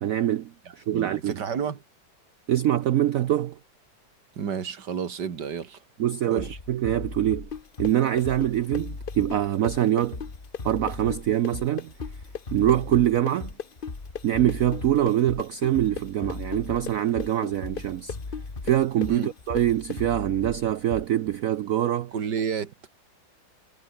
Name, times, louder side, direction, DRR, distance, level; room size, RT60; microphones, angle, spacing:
voice 1, 0.0-1.4 2.5-3.6 6.0-7.5 7.8-10.2 10.6-11.9 12.5-13.5 14.2-18.2 18.6-22.1, right 12 dB, 85° right, 0.7 m, -24 dB
voice 2, 0.9-1.8 4.4-5.8 6.3-6.6 19.1-19.3 22.1-22.9, right 7 dB, 60° right, 2.2 m, -31 dB
Bass drum, 6.4-21.4, left 3 dB, 25° left, 2.3 m, -38 dB
sound 1, 7.5-15.1 15.4-20.0, left 7 dB, 55° left, 0.6 m, -36 dB
omnidirectional pair, 2.1 m